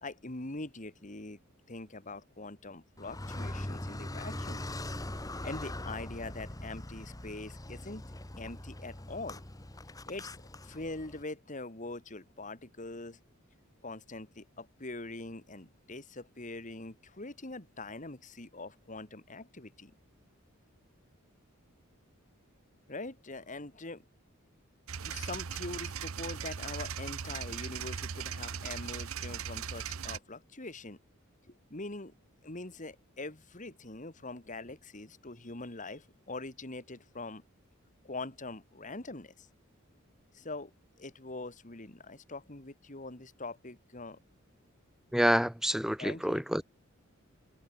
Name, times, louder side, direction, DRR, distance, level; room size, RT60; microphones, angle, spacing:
voice 1, 0.0-1.4 1.7-4.7 5.4-8.0 8.4-9.4 10.1-13.2 13.8-19.9 22.9-24.0 25.0-31.0 31.5-32.1 32.4-37.4 38.0-39.5 40.3-40.7 41.0-44.2 46.0-46.4, left 2 dB, 35° left, 2.2 m, -43 dB
Car, 3.0-11.2, left 1 dB, 15° left, 1.3 m, -41 dB
sound 1, 24.9-30.2, right 7 dB, 75° right, 0.8 m, -38 dB
voice 2, 45.1-46.6, equal, ahead, 0.7 m, -28 dB
head